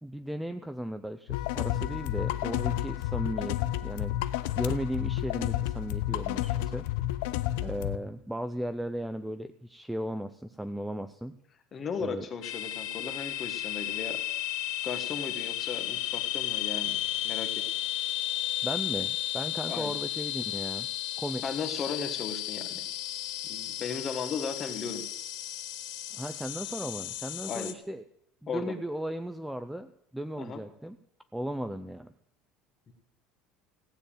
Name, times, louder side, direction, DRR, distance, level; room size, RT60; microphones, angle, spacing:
voice 1, 0.0-4.1 4.6-6.9 7.6-11.3 12.0-12.3 18.6-20.9 21.2-21.4 26.1-28.0 28.4-31.0 31.3-32.1, equal, ahead, 9 dB, 0.4 m, -36 dB
sound 1, 1.3-8.0, left 14 dB, 80° left, 0.7 m, -31 dB
voice 2, 11.7-14.2 14.8-17.6 19.7-19.9 21.4-22.8 23.5-25.0 27.5-27.7 28.5-28.7 30.4-30.6 32.9-33.0, left 5 dB, 25° left, 7 dB, 1.5 m, -36 dB
sound 2, 12.4-27.7, left 14 dB, 60° left, 1.3 m, -34 dB
15.5 x 6.8 x 8.9 m, 0.75 s
cardioid pair, 180°, 0 cm